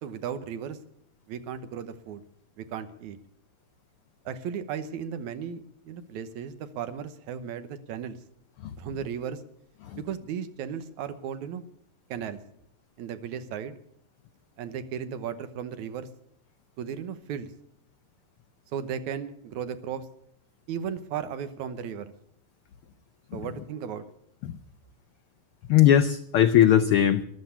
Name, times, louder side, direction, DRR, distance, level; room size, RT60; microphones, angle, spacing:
voice 1, 0.0-0.8 1.3-2.2 2.6-3.2 4.3-8.2 8.8-9.4 10.0-11.7 12.1-12.4 13.0-13.8 14.6-16.1 16.8-17.5 18.7-20.1 20.7-22.1 23.3-24.0, right 8 dB, 85° right, 11 dB, 2.4 m, -35 dB
voice 2, 25.7-27.2, left 10 dB, 90° left, 10 dB, 1.2 m, -20 dB
13.5 x 11.5 x 8.3 m, 0.70 s
omnidirectional pair, 3.4 m